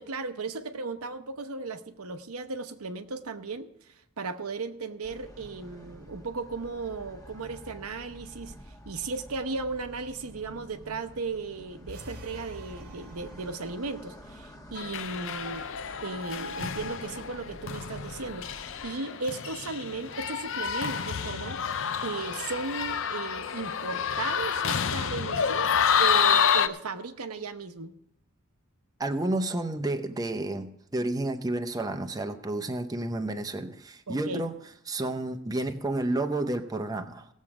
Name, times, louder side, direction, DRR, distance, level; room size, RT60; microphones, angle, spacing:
voice 1, 0.0-3.7 4.2-8.5 8.9-15.7 16.0-21.6 22.0-27.9 34.1-34.4, right 4 dB, 85° right, 8 dB, 0.9 m, -36 dB
sound 1, 5.0-18.9, equal, 15° left, 1.2 m, -49 dB
sound 2, 11.9-14.1, equal, 45° right, 1.2 m, -46 dB
sound 3, 14.8-26.7, left 7 dB, 60° left, 0.6 m, -29 dB
voice 2, 29.0-34.6 34.9-37.3, right 2 dB, 15° right, 7 dB, 0.7 m, -31 dB
17.5 x 7.4 x 4.8 m, 0.78 s
head